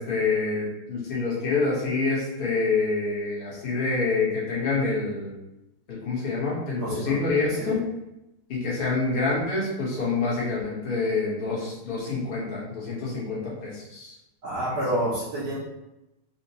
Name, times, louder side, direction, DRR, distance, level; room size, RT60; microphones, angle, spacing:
voice 1, 0.0-5.4 5.9-7.8 8.5-14.1 14.6-14.8, left 3 dB, 40° left, -6 dB, 0.8 m, -27 dB
voice 2, 6.8-7.1 7.6-7.7 14.4-15.6, right 1 dB, 65° right, -6 dB, 1.0 m, -28 dB
4.1 x 2.1 x 2.7 m, 0.92 s
omnidirectional pair, 2.3 m